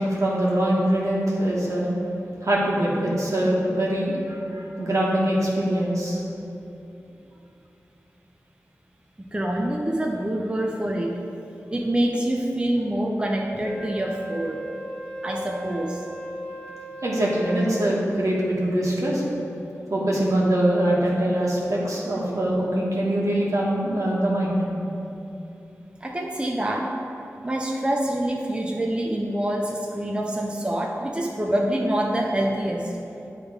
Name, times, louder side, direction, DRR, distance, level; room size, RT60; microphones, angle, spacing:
voice 1, 0.0-1.8 2.4-6.2 17.0-19.2 19.9-24.6, right 1 dB, 70° right, -4 dB, 1.4 m, -23 dB
voice 2, 9.3-11.1 11.7-14.6 15.2-16.0 26.0-26.9 27.4-32.9, right 1 dB, 20° right, 0 dB, 0.6 m, -26 dB
Wind instrument woodwind instrument, 13.6-18.0, equal, 20° left, 1.1 m, -37 dB
8.5 x 3.3 x 4.9 m, 2.8 s
cardioid pair, 45°, 6 cm